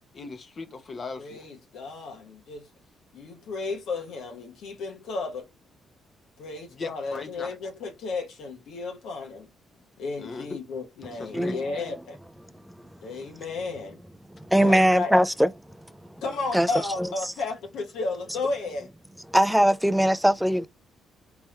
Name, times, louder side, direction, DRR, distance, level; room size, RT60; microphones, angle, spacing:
voice 1, 0.1-1.4 6.7-7.5 10.2-10.6 11.2-11.6, left 4 dB, 40° left, 0.9 m, -38 dB
voice 2, 1.2-2.7 3.1-5.5 6.4-9.5 10.0-12.2 13.0-14.0 14.6-15.1 16.2-18.9, left 3 dB, 80° left, 1.1 m, -33 dB
voice 3, 11.3-11.8 14.5-15.5 16.5-16.7 17.0-17.1 19.3-20.7, equal, 5° right, 0.4 m, -21 dB
3.6 x 2.9 x 3.1 m
cardioid pair, 90°, 0 cm